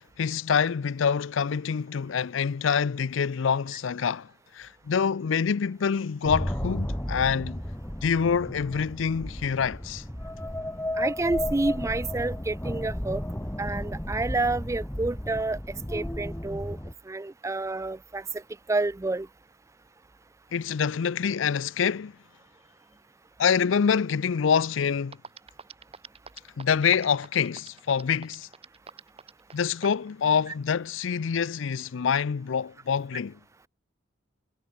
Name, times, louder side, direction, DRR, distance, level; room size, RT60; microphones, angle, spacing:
voice 1, 0.2-4.3 4.5-7.6 8.0-10.0 20.5-22.1 23.4-25.2 26.6-28.5 29.5-33.4, left 6 dB, 70° left, 0.5 m, -26 dB
sound 1, 6.2-16.9, left 1 dB, 10° left, 1.5 m, -33 dB
voice 2, 11.0-13.2 13.6-15.6 15.9-16.8 17.1-18.4 18.7-19.3, right 2 dB, 15° right, 0.4 m, -29 dB
sound 2, 25.1-30.1, right 5 dB, 30° right, 1.8 m, -44 dB
head